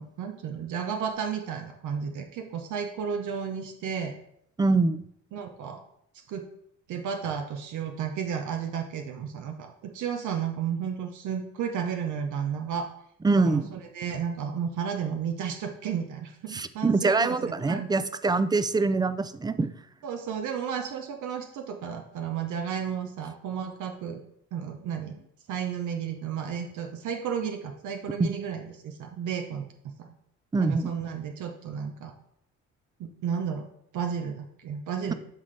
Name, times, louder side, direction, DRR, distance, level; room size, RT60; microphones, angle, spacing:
voice 1, 0.0-4.2 5.3-5.8 6.3-6.4 6.9-12.9 13.3-17.9 20.0-24.2 24.5-25.2 25.5-29.7 30.0-30.1 30.6-32.1 33.0-33.7 33.9-35.1, right 7 dB, 80° right, 5 dB, 0.8 m, -33 dB
voice 2, 4.6-5.0 13.2-13.7 16.5-19.7 28.2-28.3 30.5-30.9, right 3 dB, 15° right, 13 dB, 0.4 m, -24 dB
11.0 x 4.1 x 3.3 m, 0.72 s
cardioid pair, 90°, 30 cm